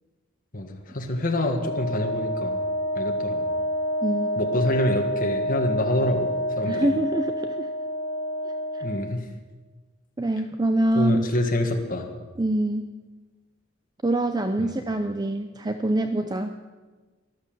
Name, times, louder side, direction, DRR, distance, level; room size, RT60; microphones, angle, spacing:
voice 1, 0.5-2.6 2.9-3.4 4.4-6.9 8.8-9.2 10.9-12.1 14.6-14.7, left 1 dB, 45° left, 2 dB, 1.6 m, -26 dB
Wind instrument woodwind instrument, 1.4-9.2, equal, 75° left, 2.4 m, -28 dB
voice 2, 6.7-7.7 8.7-8.8 10.2-11.3 12.4-12.9 14.0-16.6, right 1 dB, 20° right, 8 dB, 0.6 m, -25 dB
13.0 x 12.0 x 7.3 m, 1.3 s
head